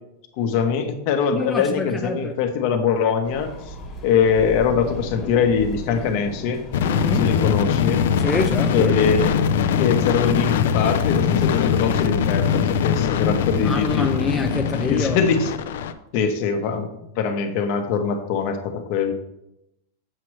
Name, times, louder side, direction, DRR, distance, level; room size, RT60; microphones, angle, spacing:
voice 1, 0.4-3.7 4.0-6.6 7.1-8.0 8.7-9.4 9.8-14.1 14.9-15.5 16.1-19.1, left 6 dB, 50° left, 0.9 m, -22 dB
voice 2, 1.3-2.3 6.9-7.4 8.2-8.9 13.5-15.2, left 3 dB, 5° left, 0.4 m, -26 dB
sound 1, 3.2-14.7, left 1 dB, 25° left, 1.3 m, -38 dB
sound 2, 6.7-15.9, left 7 dB, 70° left, 0.4 m, -22 dB
7.5 x 3.1 x 6.1 m
supercardioid pair, 155°, 0 cm